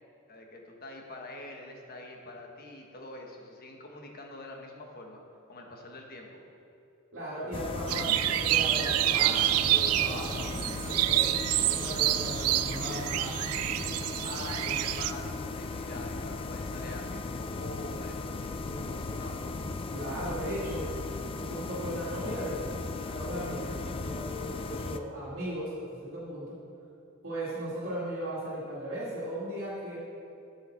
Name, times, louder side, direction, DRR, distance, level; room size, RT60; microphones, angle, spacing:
voice 1, 0.3-5.2 5.5-6.3 12.8-13.1 14.2-19.4, left 2 dB, 45° left, 1 dB, 1.3 m, -45 dB
voice 2, 7.1-13.3 18.5-18.9 19.9-20.9 21.4-26.6 27.2-30.0, equal, 55° right, -10 dB, 2.1 m, -37 dB
sound 1, 7.5-25.0, left 3 dB, 25° left, 0.3 m, -37 dB
sound 2, 7.9-15.1, right 14 dB, 90° right, 0.3 m, -28 dB
8.7 x 7.1 x 5.8 m, 2.8 s
head